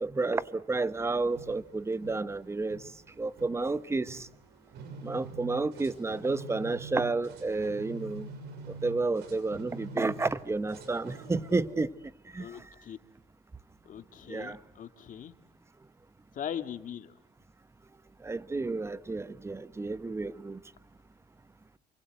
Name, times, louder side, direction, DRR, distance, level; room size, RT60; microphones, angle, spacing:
voice 1, 0.0-2.8 3.2-4.2 5.0-8.3 8.8-11.9 12.3-12.4 14.3-14.6 18.2-20.6, right 3 dB, 15° right, 1.0 m, -31 dB
sound 1, 1.1-11.8, right 3 dB, 80° right, 6.0 m, -46 dB
voice 2, 12.4-13.0 13.9-15.3 16.3-17.1, left 9 dB, 50° left, 2.0 m, -40 dB
28.0 x 25.5 x 7.9 m
cardioid pair, 110°, 17 cm